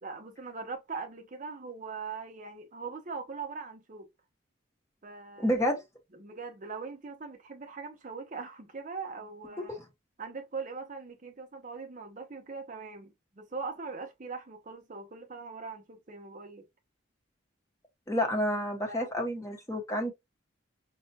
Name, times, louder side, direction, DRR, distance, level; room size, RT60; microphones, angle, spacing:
voice 1, 0.0-4.1 5.0-5.5 6.2-9.8 10.2-16.6 18.9-19.1, right 4 dB, 40° right, 0.6 m, -41 dB
voice 2, 5.4-5.8 18.1-20.1, equal, 15° left, 0.8 m, -29 dB
5.3 x 2.2 x 2.7 m
head